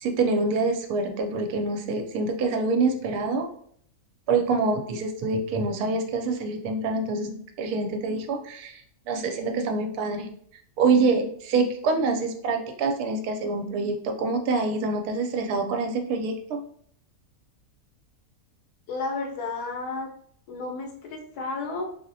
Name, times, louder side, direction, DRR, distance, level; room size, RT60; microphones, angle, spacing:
voice 1, 0.0-3.5 4.3-8.8 9.1-10.3 10.8-16.6, right 3 dB, 80° right, 5 dB, 1.1 m, -26 dB
voice 2, 18.9-20.1 20.5-21.8, left 3 dB, 85° left, 2 dB, 1.2 m, -32 dB
3.9 x 2.0 x 2.6 m, 0.62 s
omnidirectional pair, 1.6 m